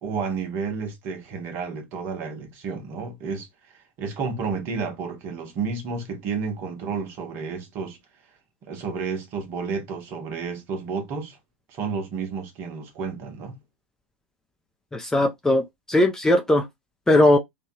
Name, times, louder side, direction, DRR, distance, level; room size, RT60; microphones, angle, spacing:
voice 1, 0.0-3.5 4.0-8.0 8.6-11.4 11.7-13.6, right 5 dB, 40° right, 1.1 m, -31 dB
voice 2, 14.9-16.7 17.1-17.4, left 1 dB, 10° left, 0.5 m, -19 dB
2.9 x 2.3 x 2.8 m
figure-of-eight pair, 95°, 6 cm